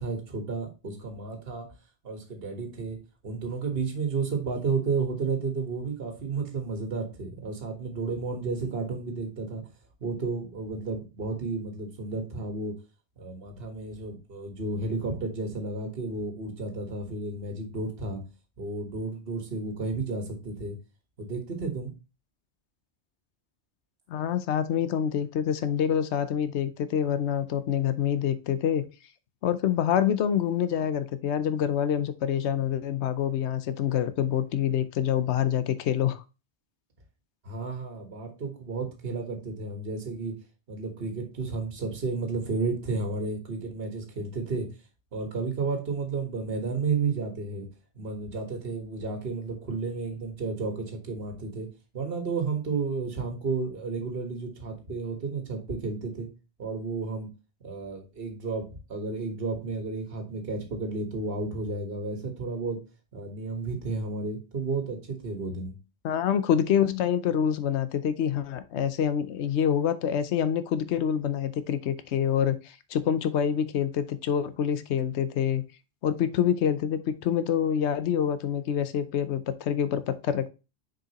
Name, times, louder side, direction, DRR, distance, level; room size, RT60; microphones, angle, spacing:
voice 1, 0.0-1.7 2.0-3.0 3.2-9.6 10.0-12.7 13.2-18.2 18.6-20.8 21.2-21.9 37.4-40.4 40.7-44.7 45.1-47.7 48.0-51.7 51.9-56.3 56.6-57.3 57.6-62.8 63.1-65.7, right 4 dB, 60° right, 1.7 m, -32 dB
voice 2, 24.1-28.8 29.4-36.2 66.0-75.6 76.0-80.5, left 9 dB, 85° left, 1.0 m, -26 dB
6.5 x 5.1 x 2.9 m
omnidirectional pair, 1.1 m